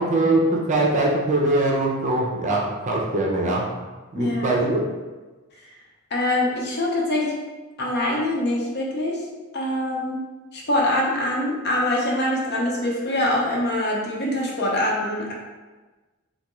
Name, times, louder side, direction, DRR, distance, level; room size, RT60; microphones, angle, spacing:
voice 1, 0.0-3.7 4.1-4.8, right 2 dB, 35° right, -1 dB, 0.5 m, -22 dB
voice 2, 4.1-4.6 6.1-7.3 7.8-9.2 9.5-10.2 10.5-15.3, left 1 dB, 55° left, -3 dB, 0.7 m, -24 dB
3.5 x 2.3 x 3.0 m, 1.3 s
head